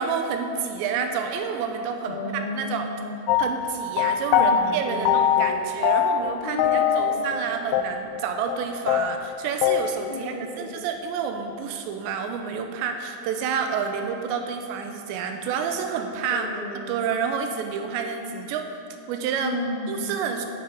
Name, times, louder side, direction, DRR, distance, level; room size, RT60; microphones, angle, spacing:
voice 1, 0.0-2.2 2.5-2.9 3.4-16.5 16.8-18.7 19.1-19.6 19.9-20.5, right 6 dB, 85° right, 5 dB, 3.1 m, -29 dB
voice 2, 2.0-3.2 4.3-5.7 6.4-7.6 10.1-10.8 16.3-17.0 19.4-20.3, left 1 dB, 45° right, -5 dB, 0.5 m, -33 dB
sound 1, 3.3-4.6 5.1-5.6 5.8-6.3 6.6-7.4 7.7-7.8 8.1-8.2 8.5-8.6 8.9-9.8, left 10 dB, 85° left, 2.3 m, -21 dB
11.0 x 8.9 x 5.3 m, 2.6 s
omnidirectional pair, 5.0 m